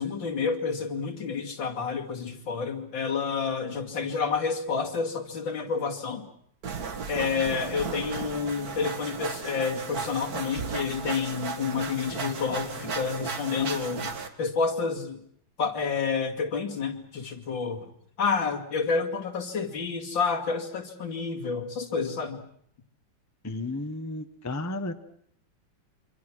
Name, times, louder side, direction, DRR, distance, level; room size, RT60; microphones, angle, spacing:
voice 1, 0.0-6.2 7.1-14.1 14.4-15.2 15.6-17.9 18.2-22.4, left 5 dB, 70° left, 1 dB, 3.1 m, -29 dB
sound 1, 6.6-14.3, right 5 dB, 50° right, 2.1 m, -35 dB
voice 2, 23.4-24.9, left 2 dB, 10° left, 8 dB, 0.8 m, -33 dB
27.5 x 25.0 x 6.2 m, 0.66 s
omnidirectional pair, 2.1 m